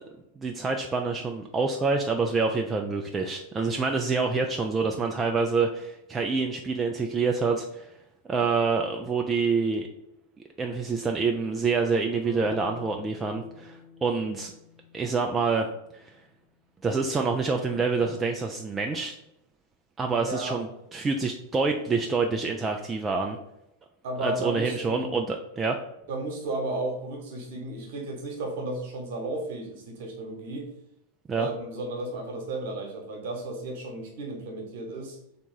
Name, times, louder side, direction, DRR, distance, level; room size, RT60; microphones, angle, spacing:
voice 1, 0.4-7.9 8.3-9.9 10.6-14.5 14.9-15.7 15.9-16.1 16.8-19.2 20.0-23.4 24.2-25.8 31.3-31.5, right 4 dB, 15° right, 3 dB, 0.4 m, -27 dB
sound 1, 12.2-16.3, left 5 dB, 35° left, 1.3 m, -47 dB
voice 2, 20.1-20.6 24.0-25.1 26.1-30.7 31.4-35.2, right 2 dB, 50° right, 2 dB, 1.2 m, -34 dB
3.5 x 2.9 x 4.4 m, 0.81 s
figure-of-eight pair, 90°, 0 cm